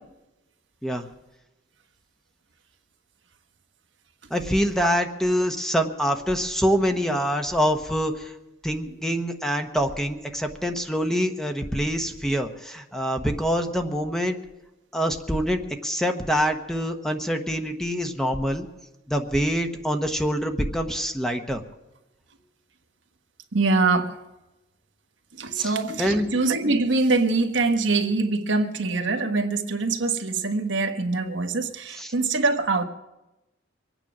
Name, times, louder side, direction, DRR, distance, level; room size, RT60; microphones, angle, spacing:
voice 1, 4.3-8.3 8.6-14.4 14.9-18.7 19.1-21.6 25.6-25.7 26.0-26.3 32.0-32.1, equal, 5° left, 1.0 m, -25 dB
voice 2, 23.5-24.1 25.3-32.9, right 3 dB, 80° right, 1.2 m, -24 dB
24.0 x 9.1 x 6.1 m
head